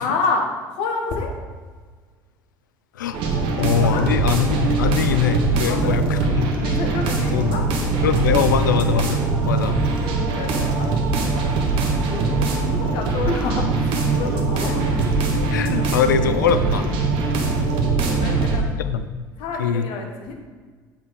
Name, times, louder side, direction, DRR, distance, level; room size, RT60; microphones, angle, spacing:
voice 1, 0.0-1.3 3.2-3.5 3.8-4.0 5.6-6.3 6.6-7.6 7.9-8.6 9.7-9.8 10.2-10.9 11.3-15.1 15.8-16.7 17.9-18.7 19.4-20.3, left 3 dB, 55° left, 2 dB, 1.3 m, -29 dB
sound 1, 3.1-18.6, right 3 dB, 55° right, 1.2 m, -22 dB
voice 2, 3.6-6.5 7.3-7.6 8.0-9.8 15.5-16.9 18.8-19.1 19.5-19.9, left 7 dB, 75° left, 11 dB, 0.4 m, -22 dB
8.0 x 4.4 x 4.6 m, 1.5 s
figure-of-eight pair, 65°, 10 cm